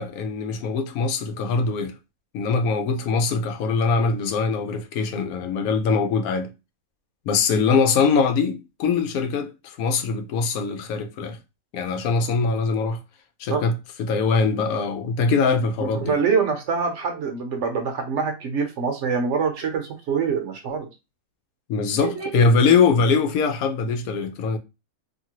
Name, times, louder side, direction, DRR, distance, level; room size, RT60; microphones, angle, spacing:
voice 1, 0.0-1.9 2.3-6.5 7.3-9.5 9.8-11.4 11.7-13.0 13.4-13.7 14.0-16.1 21.7-24.6, left 4 dB, 85° left, 1.1 m, -22 dB
voice 2, 15.8-20.9 22.0-22.4, right 5 dB, 65° right, 0.9 m, -25 dB
2.7 x 2.6 x 2.8 m
omnidirectional pair, 1.5 m